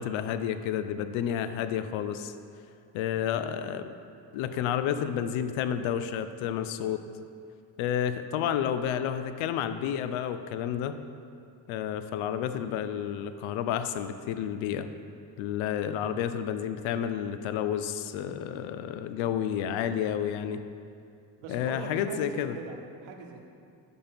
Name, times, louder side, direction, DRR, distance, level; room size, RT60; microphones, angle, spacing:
voice 1, 0.0-2.3 2.9-3.9 4.3-7.0 7.8-11.0 11.7-14.9 15.4-20.6 21.5-22.6, left 9 dB, 85° left, 10 dB, 0.5 m, -30 dB
voice 2, 21.4-23.4, right 4 dB, 85° right, 3 dB, 0.9 m, -41 dB
10.5 x 4.3 x 3.4 m, 2.4 s
cardioid pair, 80°, 46 cm